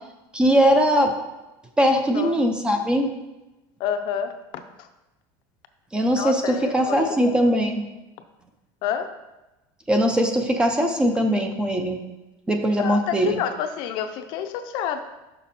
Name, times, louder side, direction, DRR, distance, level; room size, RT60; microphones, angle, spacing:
voice 1, 0.3-1.1 1.8-3.1 5.9-7.8 9.9-12.0 12.5-13.4, equal, 10° right, 5 dB, 0.5 m, -20 dB
voice 2, 3.8-4.9 6.2-7.4 8.8-9.1 12.8-15.0, left 8 dB, 50° left, 8 dB, 0.5 m, -29 dB
6.1 x 5.9 x 4.1 m, 1.0 s
cardioid pair, 175°, 10 cm